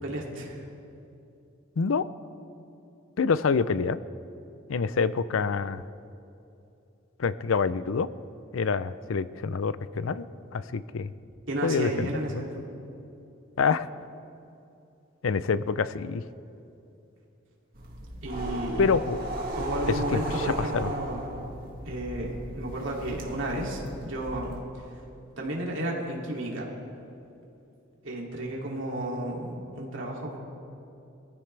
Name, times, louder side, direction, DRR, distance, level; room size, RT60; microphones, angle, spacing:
voice 1, 0.0-0.6 11.5-12.6 18.2-18.9 19.6-21.2 21.8-24.9 25.4-26.7 28.0-30.4, right 1 dB, 65° right, -2 dB, 2.6 m, -33 dB
voice 2, 1.8-2.1 3.2-4.0 4.7-5.8 7.2-8.1 8.5-10.3 10.5-11.1 11.6-12.4 13.6-13.9 15.2-16.2 18.8-19.5 20.1-20.2 20.7-20.9, left 5 dB, 80° left, 15 dB, 0.5 m, -26 dB
sound 1, 17.7-24.6, right 1 dB, 45° right, 1.9 m, -36 dB
22.0 x 14.5 x 3.3 m, 2.7 s
head